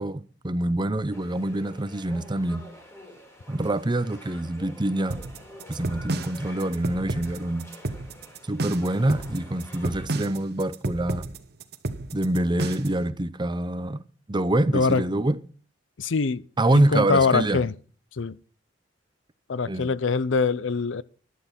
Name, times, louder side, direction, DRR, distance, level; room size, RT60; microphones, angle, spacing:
voice 1, 0.0-2.7 3.5-5.2 5.7-7.7 8.5-11.2 12.1-14.0 14.3-15.4 16.6-17.6 19.7-19.9, right 1 dB, 25° right, 0.7 m, -25 dB
sound 1, 1.1-10.1, left 1 dB, 15° left, 3.7 m, -48 dB
sound 2, 5.1-13.0, right 2 dB, 60° right, 1.0 m, -32 dB
voice 2, 14.7-15.0 16.0-16.4 16.7-17.7 18.2-18.4 19.5-21.0, left 4 dB, 85° left, 0.6 m, -23 dB
11.5 x 11.5 x 5.9 m
head